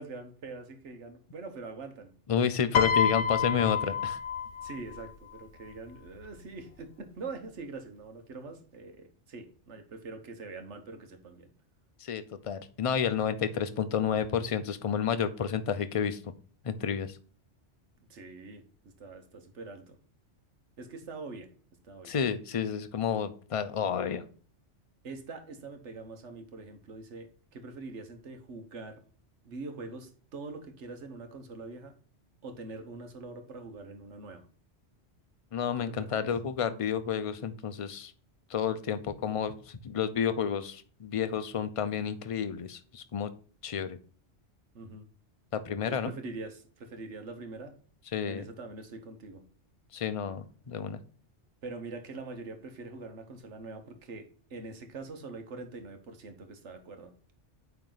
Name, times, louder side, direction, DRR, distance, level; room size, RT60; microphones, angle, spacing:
voice 1, 0.0-2.1 4.6-11.5 18.1-20.0 20.8-21.5 21.8-22.2 25.0-29.0 29.4-31.9 32.4-34.5 35.8-36.3 44.7-45.1 45.9-47.8 48.2-49.4 51.6-57.1, right 3 dB, 75° right, 1.4 m, -44 dB
voice 2, 2.3-4.2 12.0-16.2 16.6-17.1 22.0-24.2 35.5-38.1 38.5-43.3 43.6-44.0 45.5-46.1 48.1-48.5 49.9-51.0, left 7 dB, 40° left, 0.5 m, -30 dB
Piano, 2.7-5.1 6.1-6.4, left 7 dB, 75° left, 0.9 m, -28 dB
8.8 x 3.4 x 3.8 m
omnidirectional pair, 1.2 m